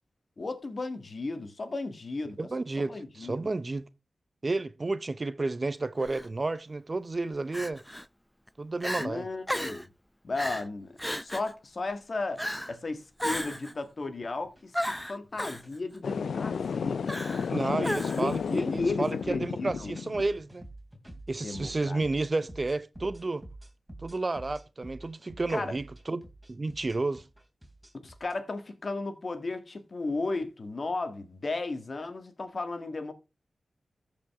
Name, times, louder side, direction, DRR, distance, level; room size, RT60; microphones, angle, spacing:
voice 1, 0.4-2.4 2.8-3.3 9.0-9.9 10.2-12.4 12.7-17.0 17.5-19.9 21.4-22.0 25.5-25.8 28.0-33.1, left 3 dB, 55° left, 1.6 m, -35 dB
voice 2, 2.4-3.9 4.4-7.8 8.6-9.3 17.5-20.6 21.3-23.4 24.0-26.2 26.5-27.3, right 3 dB, 45° right, 0.7 m, -31 dB
Crying sobbing, 6.0-6.3 7.5-8.1 8.5-8.6 8.8-9.1 9.5-9.9 10.4-10.7 11.0-11.5 12.4-12.8 13.2-13.7 14.7-15.6 17.1-17.5 17.8-18.4, equal, 5° left, 0.4 m, -34 dB
sound 1, 13.1-13.5 13.9-14.1 14.4-14.6 15.2-15.8 16.0-16.3 16.6-17.0 17.3-28.3, right 1 dB, 15° right, 2.9 m, -49 dB
sound 2, 16.0-20.2, left 6 dB, 85° left, 0.4 m, -32 dB
14.0 x 5.2 x 3.6 m
cardioid pair, 45°, 0 cm